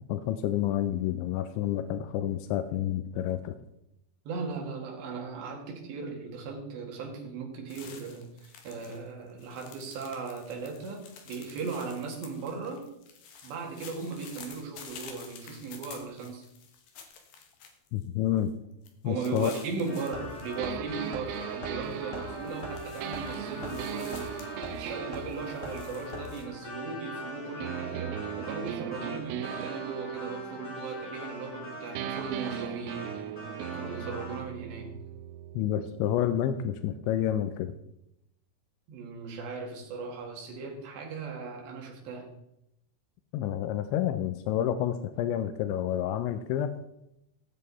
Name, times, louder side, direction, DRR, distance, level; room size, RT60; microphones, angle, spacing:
voice 1, 0.1-3.6 17.9-18.5 19.0-19.5 35.5-37.7 43.3-46.7, left 11 dB, 85° left, 10 dB, 2.7 m, -29 dB
voice 2, 4.3-12.9 13.4-16.5 19.0-33.1 33.7-35.0 38.9-42.3, right 4 dB, 65° right, 1 dB, 4.1 m, -38 dB
sound 1, 7.7-9.0 9.3-18.0 18.4-18.5 18.8-20.6 20.9-21.4 21.8-26.4, left 6 dB, 65° left, 2.5 m, -50 dB
sound 2, 19.8-34.4, left 1 dB, 30° left, 1.3 m, -41 dB
sound 3, 20.6-27.1 27.6-31.6 32.0-37.7, right 10 dB, 90° right, 3.3 m, -39 dB
18.0 x 7.6 x 4.2 m, 0.81 s
omnidirectional pair, 5.8 m